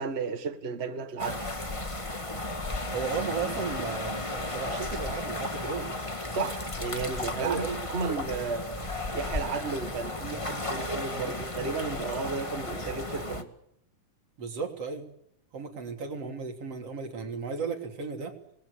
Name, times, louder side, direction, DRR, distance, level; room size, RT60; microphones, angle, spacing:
voice 1, 0.0-1.4 6.3-8.8 9.1-13.5, right 4 dB, 70° right, 0.6 m, -33 dB
sound 1, 1.2-13.4, left 1 dB, 20° left, 0.8 m, -34 dB
Wind instrument woodwind instrument, 2.5-6.8, left 6 dB, 70° left, 2.9 m, -46 dB
voice 2, 2.9-5.9 7.4-7.8 14.4-15.1 15.5-18.3, right 5 dB, 45° right, 4.0 m, -34 dB
28.0 x 21.0 x 8.5 m
omnidirectional pair, 4.2 m